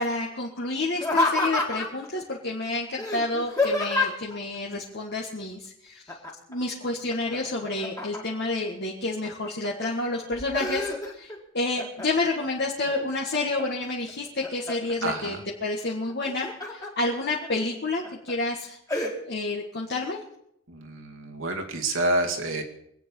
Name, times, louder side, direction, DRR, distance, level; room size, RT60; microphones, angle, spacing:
voice 1, 0.0-6.2 6.5-10.8 11.1-18.8 19.3-20.2, left 2 dB, 55° left, -2 dB, 1.7 m, -29 dB
Laughter, 0.9-2.1 3.0-4.3 6.1-6.5 6.9-8.5 9.0-9.7 10.1-11.4 11.8-12.3 12.8-13.6 14.1-14.9 16.1-16.9 17.4-17.5 18.0-18.3 18.9-19.1, left 2 dB, 15° left, 2.3 m, -28 dB
voice 2, 15.0-15.4 20.7-22.6, right 2 dB, 75° right, 2 dB, 2.4 m, -28 dB
24.0 x 9.0 x 5.5 m, 0.75 s
head